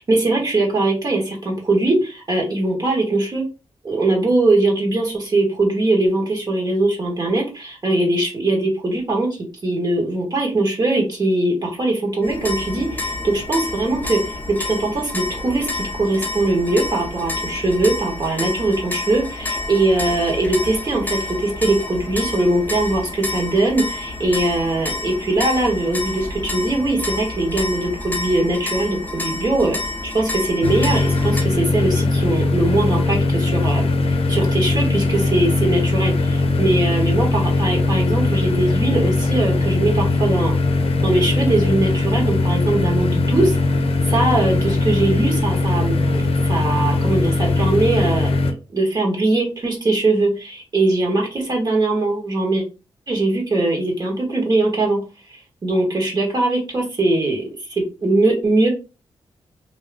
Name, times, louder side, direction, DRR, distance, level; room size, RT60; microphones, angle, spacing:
voice 1, 0.0-3.4 3.8-29.8 30.1-40.5 41.0-48.3 48.7-52.6 53.1-55.0 55.3-58.7, right 2 dB, 40° right, 0 dB, 1.4 m, -21 dB
sound 1, 12.2-31.4, left 2 dB, 15° left, 0.7 m, -29 dB
sound 2, 30.6-48.5, left 3 dB, 70° left, 0.5 m, -20 dB
2.7 x 2.3 x 3.3 m, 0.31 s
cardioid pair, 85°, 10 cm